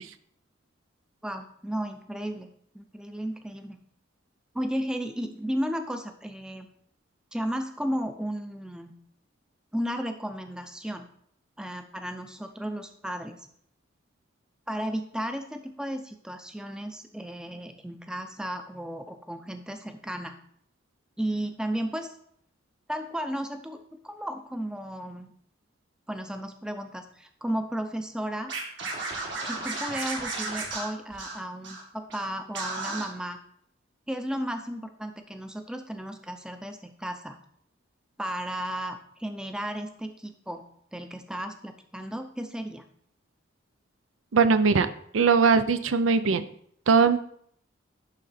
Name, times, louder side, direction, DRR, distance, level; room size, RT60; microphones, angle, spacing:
voice 1, 1.2-3.8 4.5-6.7 7.3-8.9 9.7-11.1 11.6-13.5 14.7-20.4 21.2-22.1 22.9-25.3 26.1-28.5 29.4-33.4 34.1-37.4 38.2-40.6 40.9-42.8, equal, 5° right, 6 dB, 0.5 m, -34 dB
Scratching (performance technique), 28.5-31.8 32.1-32.3 32.5-33.1, right 3 dB, 65° right, 1.9 m, -33 dB
voice 2, 44.3-44.9 45.1-46.4 46.9-47.2, right 5 dB, 85° right, 12 dB, 0.5 m, -20 dB
11.5 x 3.8 x 4.2 m, 0.65 s
head